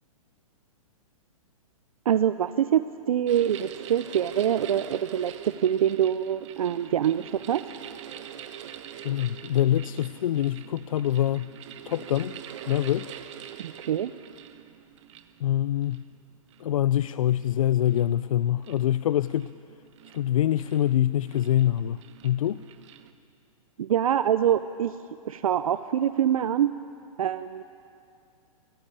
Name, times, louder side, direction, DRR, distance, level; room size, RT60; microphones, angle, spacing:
voice 1, 2.0-7.6 13.6-14.1 23.8-25.0 25.2-26.7 27.2-27.6, right 10 dB, 70° right, 12 dB, 0.7 m, -25 dB
sound 1, 3.3-23.1, right 10 dB, 55° right, 1.3 m, -44 dB
voice 2, 9.0-11.5 11.8-12.4 12.7-13.1 15.4-16.0 16.6-19.5 20.1-22.6, left 12 dB, 65° left, 16 dB, 0.5 m, -25 dB
20.5 x 18.0 x 8.7 m, 2.5 s
hypercardioid pair, 135°, 18 cm